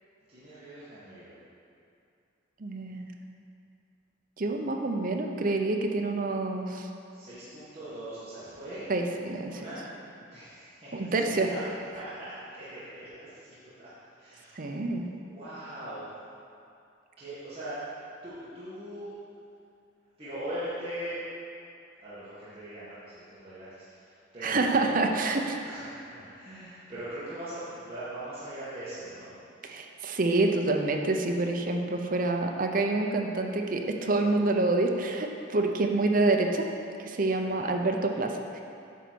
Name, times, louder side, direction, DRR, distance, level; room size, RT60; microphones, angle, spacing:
voice 1, 0.3-1.3 7.1-8.8 9.5-9.8 10.3-11.6 11.9-13.9 14.2-14.7 15.2-16.1 17.2-19.1 20.2-21.2 22.0-25.1 25.6-29.4 37.4-37.6, right 1 dB, 30° right, -13 dB, 1.6 m, -41 dB
voice 2, 2.6-3.1 4.4-6.9 8.9-9.6 10.9-11.5 14.6-15.1 24.4-25.6 29.6-36.7 37.0-38.6, right 2 dB, 45° right, 3 dB, 0.6 m, -27 dB
9.1 x 4.0 x 6.2 m, 2.5 s
head